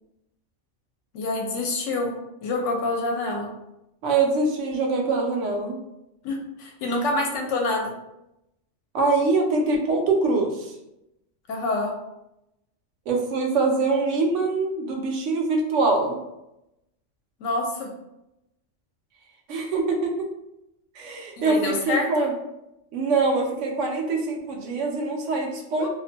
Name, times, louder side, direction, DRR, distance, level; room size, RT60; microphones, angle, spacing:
voice 1, 1.1-2.1 2.4-3.5 6.2-7.9 11.5-11.9 17.4-17.9 21.4-22.3 25.8-25.9, left 2 dB, 80° left, 2 dB, 0.9 m, -27 dB
voice 2, 4.0-5.8 8.9-10.7 13.1-16.2 19.5-20.3 20.9-22.3 22.9-25.9, right 3 dB, 80° right, 1 dB, 0.9 m, -24 dB
2.6 x 2.1 x 2.6 m, 0.88 s
omnidirectional pair, 1.3 m